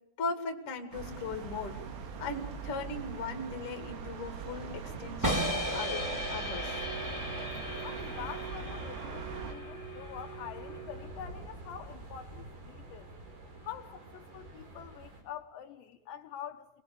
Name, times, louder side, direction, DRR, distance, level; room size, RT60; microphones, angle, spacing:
voice 1, 0.2-1.8 2.2-6.8, left 3 dB, 40° left, 2.3 m, -38 dB
sound 1, 0.9-9.5, right 6 dB, 85° right, 4.9 m, -42 dB
sound 2, 4.3-15.2, right 2 dB, 55° right, 6.9 m, -48 dB
sound 3, 5.2-11.2, right 1 dB, 5° right, 2.6 m, -36 dB
voice 2, 7.8-13.1 13.6-16.7, left 9 dB, 75° left, 3.1 m, -45 dB
27.0 x 21.0 x 6.9 m
omnidirectional pair, 5.5 m